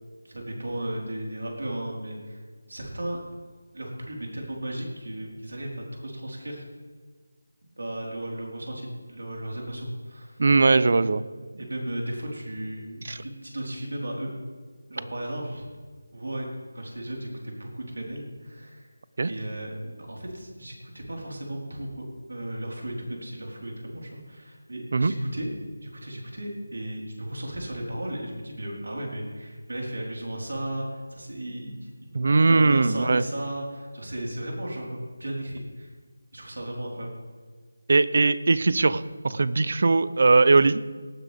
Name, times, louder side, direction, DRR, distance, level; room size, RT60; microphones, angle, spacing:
voice 1, 0.2-2.4 2.7-3.2 3.7-6.6 7.8-10.4 11.5-14.3 14.9-15.6 16.1-16.5 16.7-18.9 19.3-25.5 25.8-32.2 32.5-35.9 36.3-37.1, right 1 dB, 85° right, -1 dB, 4.3 m, -35 dB
voice 2, 10.4-11.2 13.1-13.2 19.2-19.3 24.9-25.1 32.1-33.2 37.9-40.8, right 3 dB, 50° right, 16 dB, 0.5 m, -20 dB
18.0 x 10.0 x 3.5 m, 1.5 s
figure-of-eight pair, 175°, 0 cm